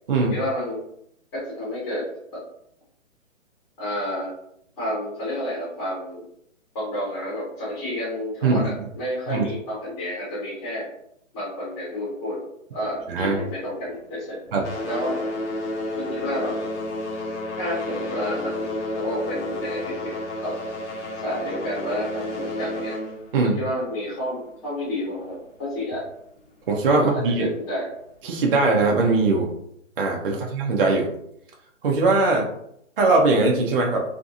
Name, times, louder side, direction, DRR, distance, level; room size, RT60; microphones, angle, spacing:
voice 1, 0.2-0.8 1.3-2.4 3.8-4.3 4.8-6.2 6.7-10.9 11.3-12.4 12.7-14.4 14.8-15.2 16.0-16.6 17.6-20.5 21.2-22.9 23.4-26.0 26.9-27.9 30.2-30.5, left 1 dB, 20° left, -7 dB, 0.9 m, -30 dB
sound 1, 12.8-14.1 14.4-24.7 25.6-25.7 26.4-26.5 27.1-27.2, left 1 dB, 65° left, 0.9 m, -32 dB
voice 2, 13.1-13.4 14.5-14.6 23.3-23.6 26.7-27.5 28.2-29.5 30.0-31.1 31.8-32.5 33.0-34.0, right 3 dB, 45° right, 0 dB, 0.5 m, -20 dB
2.7 x 2.5 x 2.4 m, 0.73 s
hypercardioid pair, 150°, 40 cm